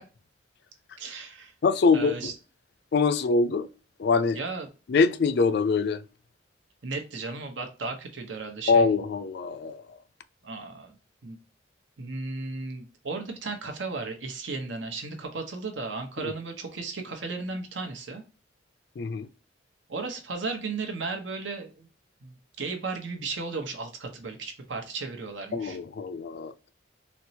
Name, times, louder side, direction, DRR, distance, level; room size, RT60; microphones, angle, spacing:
voice 1, 1.0-1.5 1.9-2.3 4.3-4.7 6.8-8.9 10.4-10.9 11.2-11.4 12.0-18.2 19.9-21.9 22.2-25.8, right 3 dB, 75° right, 0.8 m, -35 dB
voice 2, 1.6-2.3 2.9-3.7 4.0-4.4 4.9-6.0 8.7-9.8 16.2-16.3 19.0-19.3 25.5-26.7, left 4 dB, 60° left, 0.4 m, -24 dB
4.3 x 2.0 x 2.6 m
head